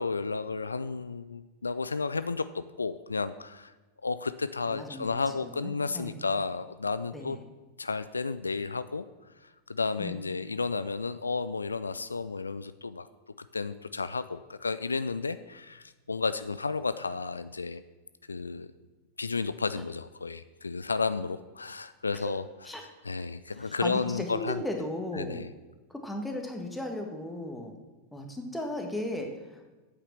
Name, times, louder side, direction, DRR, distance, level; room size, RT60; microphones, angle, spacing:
voice 1, 0.0-3.7 4.0-7.4 7.8-9.0 9.4-13.1 13.5-17.8 18.3-18.7 19.2-22.4 23.0-24.6 25.2-25.5, left 4 dB, 75° left, 13 dB, 0.3 m, -32 dB
voice 2, 4.7-6.2 7.1-7.4 10.0-10.2 22.1-22.3 22.6-22.8 23.6-25.4 25.9-27.7 28.1-29.6, left 1 dB, 5° left, 3 dB, 1.6 m, -36 dB
8.7 x 8.1 x 6.0 m, 1.2 s
figure-of-eight pair, 90°, 0 cm